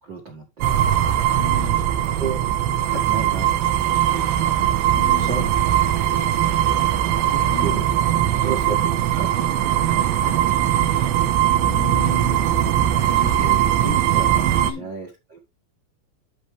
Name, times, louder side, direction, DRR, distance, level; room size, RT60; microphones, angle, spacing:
voice 1, 0.0-0.8 2.2-2.4 2.9-4.4 4.9-7.9 8.4-11.1 12.9-13.0 13.4-13.5 13.8-15.4, right 5 dB, 65° right, 1.1 m, -34 dB
sound 1, 0.6-14.7, right 11 dB, 90° right, 3.2 m, -20 dB
voice 2, 1.4-1.8 4.9-5.5 7.5-7.8 11.6-12.4 13.0-14.0 14.6-14.9, left 18 dB, 80° left, 3.2 m, -35 dB
13.5 x 4.6 x 3.3 m
omnidirectional pair, 5.2 m